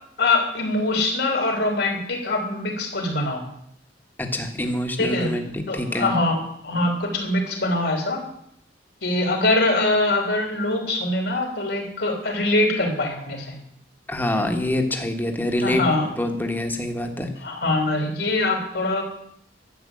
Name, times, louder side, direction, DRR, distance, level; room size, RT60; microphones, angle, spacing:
voice 1, 0.2-3.4 5.0-5.3 5.7-8.2 9.0-13.6 15.6-16.1 17.4-19.0, left 2 dB, 75° left, 1 dB, 3.2 m, -23 dB
voice 2, 4.2-5.4 5.7-6.1 14.1-15.8 16.2-17.3, left 1 dB, 10° left, 4 dB, 1.5 m, -25 dB
12.0 x 7.6 x 8.6 m, 0.72 s
head